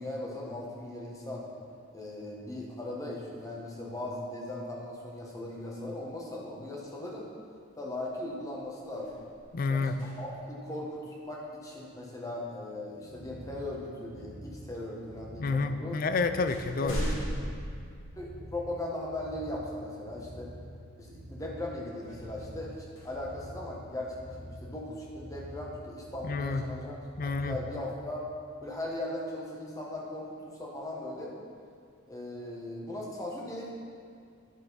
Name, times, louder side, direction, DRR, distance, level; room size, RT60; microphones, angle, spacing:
voice 1, 0.0-1.5 1.9-7.3 7.8-9.2 9.7-16.0 16.8-17.2 18.2-20.5 21.0-28.3 28.6-31.4 32.1-33.7, left 1 dB, 15° left, -2 dB, 1.2 m, -38 dB
sound 1, 8.5-10.6 12.7-12.9 13.7-14.5 15.4-15.5 15.9-18.7 19.2-19.3 21.9-24.1, equal, 80° left, 2.0 m, -40 dB
voice 2, 9.5-9.9 15.4-17.0 26.2-26.6 27.2-27.6, left 4 dB, 45° left, 9 dB, 0.4 m, -29 dB
sound 2, 12.9-27.9, equal, 75° right, 1.2 m, -47 dB
11.0 x 6.5 x 4.1 m, 2.3 s
head